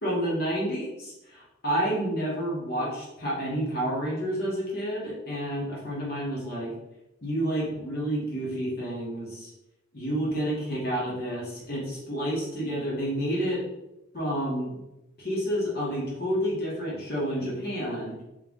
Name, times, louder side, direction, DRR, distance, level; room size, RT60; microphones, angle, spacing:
voice 1, 0.0-6.7 7.2-9.5 9.9-13.6 14.1-14.8 15.2-18.2, equal, 50° left, -5 dB, 1.4 m, -29 dB
3.3 x 3.2 x 3.6 m, 0.95 s
head